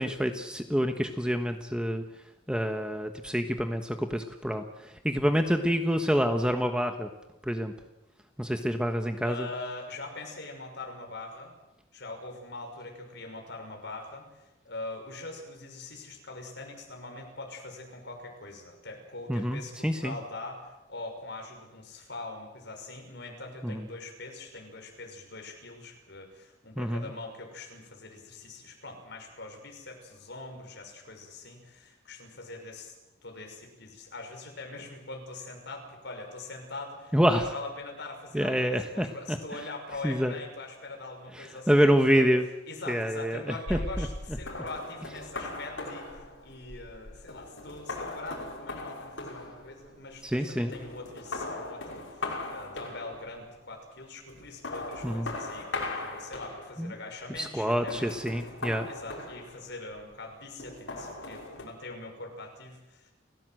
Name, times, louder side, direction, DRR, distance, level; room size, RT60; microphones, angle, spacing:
voice 1, 0.0-2.0 2.5-7.1 7.4-7.7 8.4-9.5 19.3-20.1 23.6-23.8 26.8-27.1 37.1-37.5 38.3-39.4 40.0-40.3 41.3-42.4 42.9-44.1 50.2-50.7 55.0-55.3 56.8-56.9 57.4-58.9, equal, 5° right, 6 dB, 1.3 m, -27 dB
voice 2, 9.2-11.6 11.9-32.9 33.2-42.3 42.7-58.3 58.8-63.1, left 2 dB, 65° left, 3 dB, 6.1 m, -42 dB
sound 1, 43.7-50.4 50.7-53.4 54.3-56.9 57.7-59.9 60.6-61.7, left 2 dB, 85° left, 5.9 m, -39 dB
30.0 x 16.0 x 7.8 m, 0.99 s
head